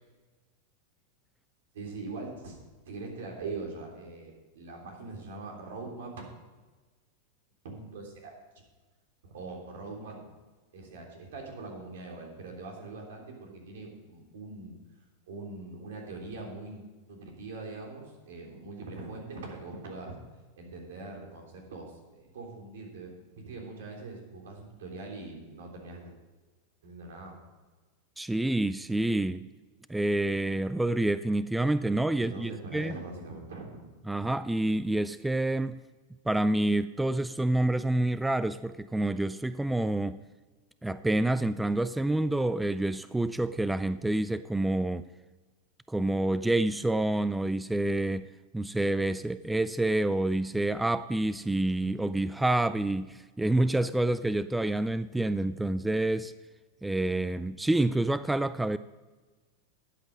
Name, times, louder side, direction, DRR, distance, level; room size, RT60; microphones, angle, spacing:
voice 1, 1.7-2.6 2.9-6.1 7.6-8.6 9.2-10.3 10.7-14.8 15.3-20.2 20.5-26.2 26.8-27.4 32.2-33.9, right 3 dB, 80° right, 1 dB, 3.4 m, -42 dB
voice 2, 28.2-29.5 29.9-32.9 34.1-35.8 36.3-40.2 40.8-45.1 45.9-48.3 48.5-56.3 56.8-58.8, right 1 dB, 5° right, 14 dB, 0.3 m, -28 dB
12.0 x 8.2 x 5.3 m, 1.3 s
hypercardioid pair, 120°, 0 cm